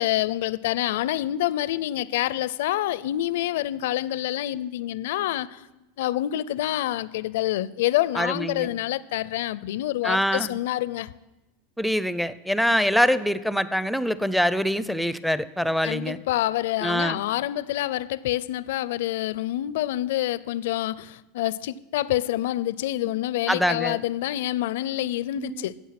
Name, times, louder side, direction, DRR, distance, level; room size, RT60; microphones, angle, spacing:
voice 1, 0.0-5.6 6.0-11.1 12.7-12.9 15.8-25.8, left 14 dB, 70° left, 0.5 m, -27 dB
voice 2, 8.2-8.7 10.0-10.6 11.8-16.2 16.8-17.2 23.5-24.0 25.4-25.6, equal, ahead, 0.6 m, -24 dB
15.0 x 8.0 x 5.9 m
hypercardioid pair, 100°, 0 cm